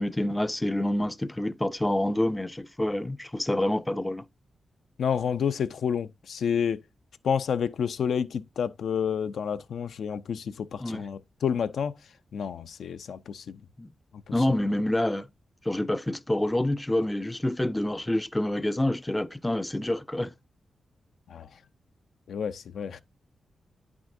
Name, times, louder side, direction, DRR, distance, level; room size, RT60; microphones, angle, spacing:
voice 1, 0.0-4.2 10.8-11.0 13.8-13.9 14.3-15.3 15.6-20.3, left 1 dB, 10° left, 0.3 m, -27 dB
voice 2, 5.0-6.8 7.2-11.9 12.3-13.6 14.3-14.4 21.3-21.5 22.3-23.0, left 7 dB, 80° left, 0.4 m, -29 dB
9.1 x 6.0 x 2.5 m
wide cardioid pair, 115°, 0 cm